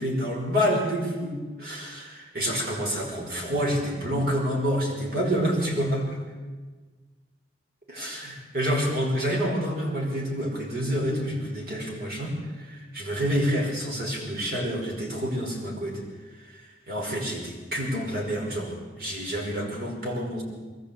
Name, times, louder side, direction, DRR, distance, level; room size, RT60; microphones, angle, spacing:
voice 1, 0.0-6.2 7.9-16.0 16.5-16.6 16.9-20.4, equal, 55° right, -1 dB, 5.5 m, -28 dB
22.0 x 13.5 x 8.6 m, 1.3 s
head